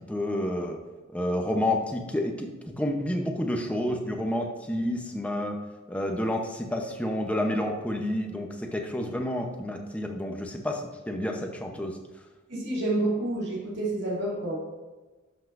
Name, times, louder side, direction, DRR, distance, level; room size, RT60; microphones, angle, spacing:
voice 1, 0.1-0.8 1.1-5.6 5.9-12.0, left 1 dB, 5° left, 2 dB, 0.7 m, -29 dB
voice 2, 12.5-14.6, right 2 dB, 55° right, -4 dB, 1.9 m, -28 dB
11.5 x 5.5 x 2.5 m, 1.2 s
head